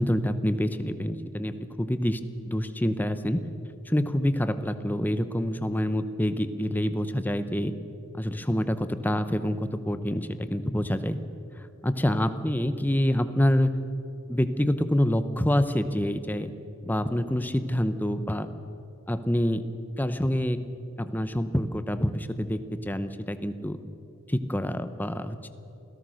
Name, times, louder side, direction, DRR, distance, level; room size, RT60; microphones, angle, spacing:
voice 1, 0.0-2.2 2.5-3.4 3.9-7.7 8.1-11.2 11.6-13.8 14.3-16.5 16.8-18.5 19.1-19.6 20.0-23.8 24.3-25.5, equal, 10° left, 10 dB, 0.7 m, -27 dB
27.5 x 17.0 x 6.4 m, 2.9 s
head